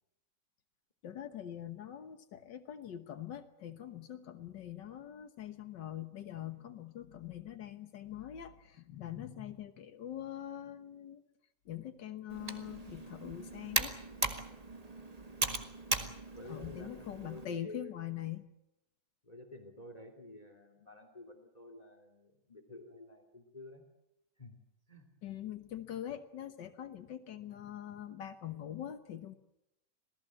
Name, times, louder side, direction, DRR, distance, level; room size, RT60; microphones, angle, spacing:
voice 1, 1.0-11.2 11.7-13.9 16.5-18.4 25.2-29.4, left 11 dB, 85° left, 8 dB, 1.9 m, -43 dB
Computer keyboard, 12.3-17.5, right 3 dB, 20° right, 1.8 m, -38 dB
voice 2, 16.3-17.9 19.2-23.8 24.4-24.6 24.9-25.1, left 2 dB, 20° left, 6 dB, 2.9 m, -51 dB
27.0 x 18.5 x 7.6 m, 0.85 s
omnidirectional pair, 1.9 m